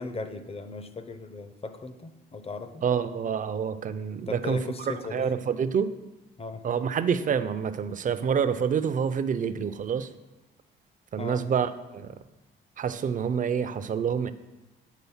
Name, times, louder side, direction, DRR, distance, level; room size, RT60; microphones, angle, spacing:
voice 1, 0.0-2.8 4.3-5.3 6.4-6.6 11.2-11.5, left 3 dB, 30° left, 10 dB, 0.7 m, -37 dB
voice 2, 2.8-5.9 6.6-10.1 11.1-12.2 12.8-14.3, right 7 dB, 40° right, 12 dB, 0.5 m, -27 dB
8.3 x 3.9 x 5.6 m, 1.1 s
cardioid pair, 90°, 20 cm